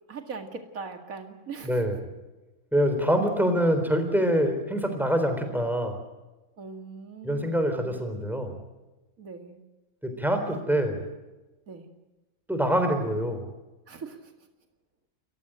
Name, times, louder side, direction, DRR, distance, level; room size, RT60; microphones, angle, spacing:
voice 1, 0.1-1.8 6.6-8.0 9.2-9.6 11.7-11.9 13.9-14.3, right 4 dB, 70° right, 6 dB, 2.5 m, -41 dB
voice 2, 1.6-2.0 2.7-6.0 7.2-8.6 10.0-11.1 12.5-13.5, equal, ahead, 6 dB, 3.8 m, -25 dB
29.0 x 15.0 x 8.9 m, 1.1 s
omnidirectional pair, 1.5 m